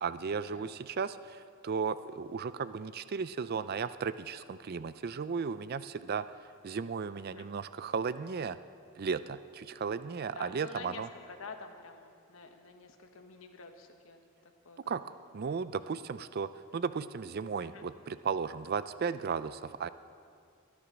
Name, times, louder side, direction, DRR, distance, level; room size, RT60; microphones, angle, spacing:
voice 1, 0.0-6.2 6.6-8.6 9.0-11.1 14.9-19.9, right 5 dB, 50° right, 14 dB, 0.4 m, -35 dB
voice 2, 10.3-14.3 14.6-14.9 17.6-17.8, left 4 dB, 75° left, 4 dB, 1.3 m, -48 dB
22.5 x 9.7 x 6.1 m, 2.3 s
head